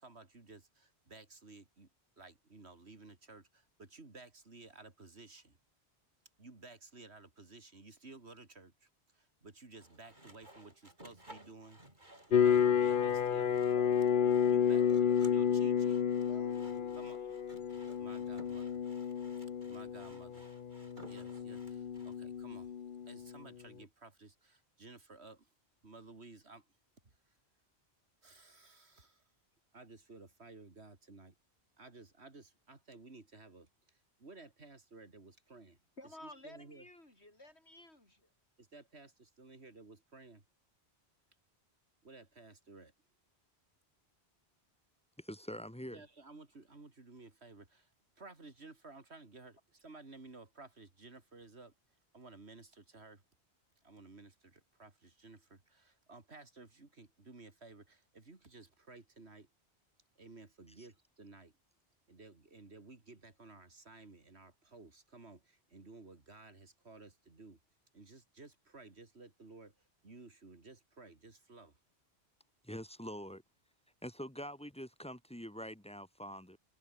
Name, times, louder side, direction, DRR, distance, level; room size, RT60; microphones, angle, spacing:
voice 1, 0.0-1.9 2.2-5.6 6.4-11.8 12.3-13.6 14.2-16.0 17.0-17.4 18.0-18.8 19.7-20.5 21.0-22.7 23.1-25.5 25.8-26.6 27.0-27.1 28.2-29.2 29.7-31.4 31.8-35.8 36.0-36.9 38.6-40.4 42.0-42.9 45.9-47.9 48.2-51.7 52.1-53.2 53.8-59.5 60.2-61.5 62.1-67.6 67.9-69.7 70.0-71.8, right 3 dB, 75° right, 3.5 m, -55 dB
Sawing, 9.7-22.2, right 1 dB, 45° right, 7.8 m, -58 dB
sound 1, 12.3-23.4, left 8 dB, 55° left, 0.9 m, -31 dB
voice 2, 13.8-15.7 16.2-17.1 36.0-38.3, left 1 dB, 75° left, 7.2 m, -55 dB
voice 3, 45.2-46.0 60.8-60.9 72.6-73.4 74.0-76.6, equal, 5° left, 1.6 m, -45 dB
omnidirectional pair, 1.1 m